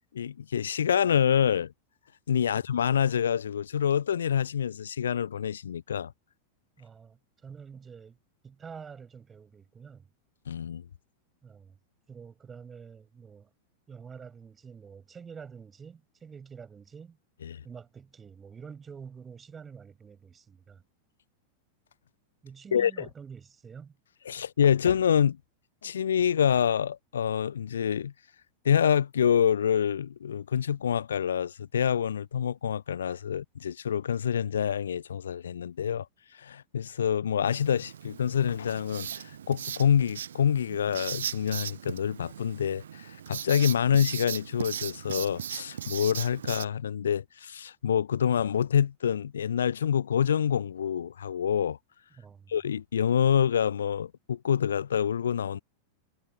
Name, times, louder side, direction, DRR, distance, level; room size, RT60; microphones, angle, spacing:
voice 1, 0.1-1.7 2.3-6.1 10.5-10.8 17.4-17.6 22.7-23.1 24.3-25.4 25.8-28.1 28.6-36.1 36.4-51.8 52.5-55.6, left 8 dB, 65° left, 0.4 m, -26 dB
voice 2, 6.8-8.2 8.4-10.1 11.4-11.8 12.1-13.5 13.9-17.2 17.6-20.8 22.4-24.0 52.2-52.5, right 6 dB, 20° right, 6.4 m, -47 dB
Writing, 37.4-46.7, right 9 dB, 65° right, 0.7 m, -38 dB
figure-of-eight pair, 90°, 0 cm